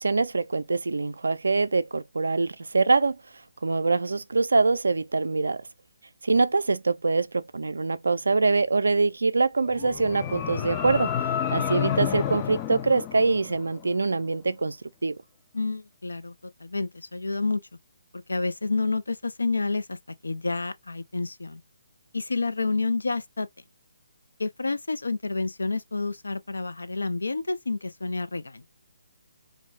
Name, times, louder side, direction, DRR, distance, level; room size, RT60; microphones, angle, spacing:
voice 1, 0.0-3.2 3.6-5.7 6.2-11.2 11.5-14.8 15.0-15.2, right 3 dB, 80° right, 0.4 m, -24 dB
sound 1, 9.6-13.9, left 9 dB, 25° left, 0.3 m, -30 dB
voice 2, 15.5-17.6 18.1-20.0 20.2-21.6 22.1-23.5 24.4-28.6, left 3 dB, 85° left, 0.5 m, -29 dB
2.6 x 2.0 x 3.3 m
figure-of-eight pair, 150°, 0 cm